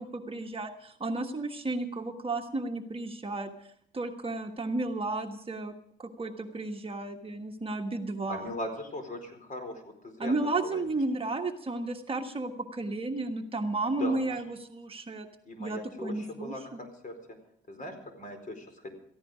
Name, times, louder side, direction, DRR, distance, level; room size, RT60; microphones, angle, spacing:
voice 1, 0.0-3.5 3.9-5.7 6.0-8.5 10.2-15.3 15.6-16.5, right 2 dB, 30° right, 4 dB, 1.4 m, -33 dB
voice 2, 8.3-10.3 10.6-10.8 14.0-14.4 15.4-17.1 17.7-18.9, left 1 dB, 40° left, 6 dB, 4.6 m, -39 dB
17.5 x 14.5 x 5.0 m, 0.66 s
cardioid pair, 90°, 20 cm